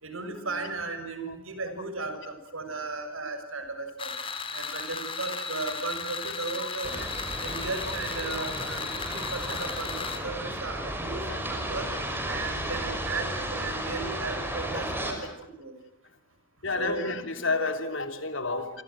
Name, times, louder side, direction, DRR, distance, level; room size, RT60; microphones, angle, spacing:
voice 1, 0.0-4.1 4.5-7.1 7.4-8.9 9.1-11.9 12.2-15.2 15.6-15.7 16.8-17.0 18.5-18.6, right 3 dB, 85° right, 8 dB, 6.5 m, -35 dB
sound 1, 4.0-10.2, left 5 dB, 25° left, 4.4 m, -35 dB
voice 2, 6.6-7.0 7.4-7.6 8.4-8.5 14.7-14.8 16.6-18.7, left 3 dB, 65° left, 7 dB, 3.3 m, -31 dB
sound 2, 6.8-15.1, right 1 dB, 10° right, 5.7 m, -34 dB
29.0 x 25.0 x 7.7 m, 0.91 s
head